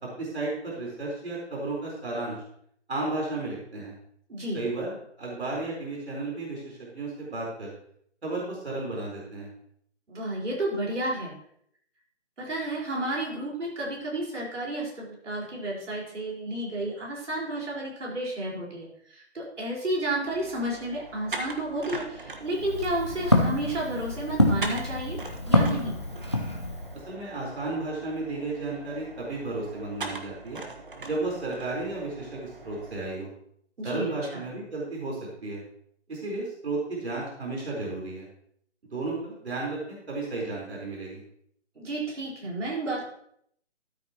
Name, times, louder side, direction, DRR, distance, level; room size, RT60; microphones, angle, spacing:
voice 1, 0.0-2.4 2.9-3.9 4.5-7.7 8.2-9.5 26.9-30.6 31.1-33.3 33.8-35.6 36.1-38.3 38.9-41.2, right 2 dB, 65° right, -3 dB, 4.3 m, -33 dB
voice 2, 4.3-4.6 10.1-11.3 12.4-25.2 25.5-26.0 33.8-34.4 41.7-43.0, right 1 dB, 90° right, -3 dB, 4.7 m, -31 dB
sound 1, 20.2-33.0, right 2 dB, 45° right, 1.4 m, -41 dB
Walk footsteps, 22.5-27.0, left 1 dB, 25° left, 0.6 m, -26 dB
13.0 x 9.2 x 3.0 m, 0.68 s
hypercardioid pair, 175°, 35 cm